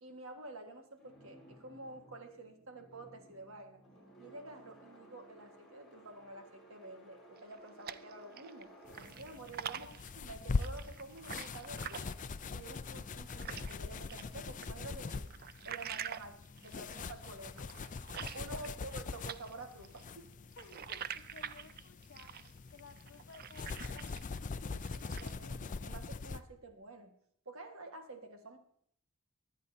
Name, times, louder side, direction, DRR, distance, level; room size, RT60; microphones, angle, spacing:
voice 1, 0.0-3.8 4.2-8.7 9.2-12.2 12.5-15.2 15.7-17.7 18.3-20.3 24.6-27.1 27.5-28.6, right 2 dB, 65° right, 5 dB, 1.6 m, -49 dB
sound 1, 1.0-10.9, right 1 dB, ahead, 4.5 m, -59 dB
sound 2, 7.4-8.6 8.9-13.8 14.1-19.0 19.3-24.4 24.7-25.5, right 9 dB, 45° right, 0.4 m, -46 dB
sound 3, 8.9-26.4, left 4 dB, 35° left, 0.5 m, -42 dB
voice 2, 18.5-18.8 20.6-22.3 22.7-24.1, left 5 dB, 55° left, 7 dB, 1.1 m, -55 dB
24.0 x 9.2 x 2.7 m, 0.68 s
head